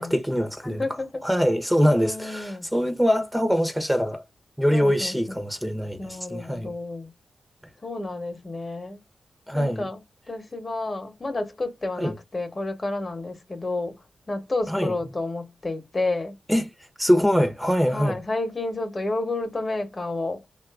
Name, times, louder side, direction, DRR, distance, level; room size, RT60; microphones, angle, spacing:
voice 1, 0.0-0.8 1.2-4.2 4.6-6.7 9.5-9.9 12.0-12.1 14.7-14.9 16.5-16.7 17.0-18.2, equal, 5° right, 0.7 m, -23 dB
voice 2, 0.6-1.1 1.9-2.7 4.7-5.4 6.0-7.1 7.8-9.0 9.5-10.0 10.3-16.4 17.9-20.4, left 2 dB, 40° left, 1.0 m, -30 dB
2.6 x 2.4 x 3.5 m
cardioid pair, 55°, 0 cm